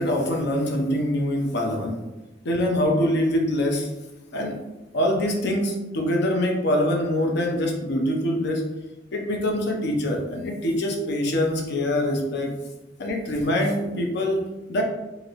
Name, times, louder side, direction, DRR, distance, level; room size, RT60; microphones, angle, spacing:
voice 1, 0.0-2.0 2.4-3.9 4.3-4.6 4.9-8.7 9.1-12.6 13.0-14.8, left 1 dB, 60° left, 2 dB, 0.6 m, -24 dB
2.9 x 2.6 x 2.8 m, 1.0 s
head